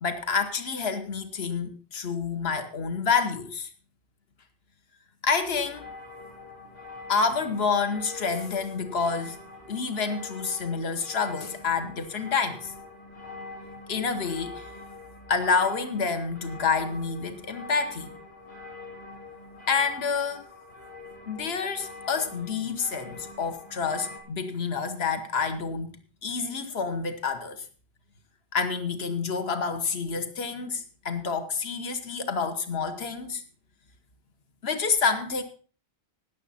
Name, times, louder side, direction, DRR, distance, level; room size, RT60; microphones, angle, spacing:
voice 1, 0.0-3.7 5.2-5.8 7.1-9.4 9.7-12.7 13.9-14.7 15.3-18.1 19.7-20.4 21.3-25.9 26.2-27.6 28.5-33.4 34.6-35.4, left 5 dB, 75° left, 1.4 m, -28 dB
sound 1, 5.5-24.2, left 3 dB, 50° left, 3.3 m, -44 dB
18.5 x 7.3 x 4.2 m
omnidirectional pair, 1.1 m